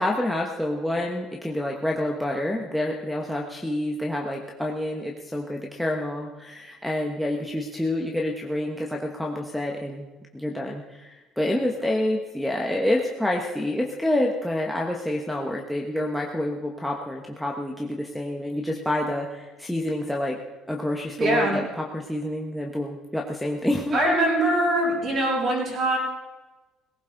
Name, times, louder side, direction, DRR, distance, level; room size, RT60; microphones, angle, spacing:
voice 1, 0.0-10.1 10.3-20.4 20.7-24.1, left 1 dB, ahead, -1 dB, 1.2 m, -28 dB
voice 2, 21.2-21.6 23.9-26.0, right 1 dB, 35° right, -5 dB, 7.2 m, -23 dB
18.5 x 17.0 x 3.9 m, 1.2 s
cardioid pair, 145°, 0 cm